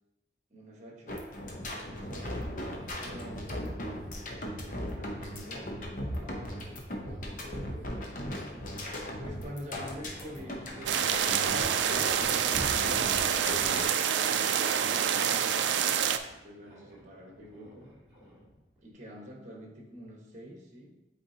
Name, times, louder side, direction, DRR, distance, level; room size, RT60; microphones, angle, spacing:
voice 1, 0.5-1.2 1.8-2.4 3.0-3.6 4.6-8.2 9.2-11.5 14.9-15.7 16.3-17.9 18.8-20.9, equal, 40° right, -1 dB, 1.4 m, -47 dB
sound 1, 1.1-13.8, equal, 45° left, 0.9 m, -38 dB
Lasers Firing (slinky), 9.6-18.9, equal, 5° right, 2.0 m, -51 dB
sound 2, 10.9-16.2, right 8 dB, 80° right, 0.4 m, -27 dB
8.3 x 4.3 x 2.8 m, 0.94 s
head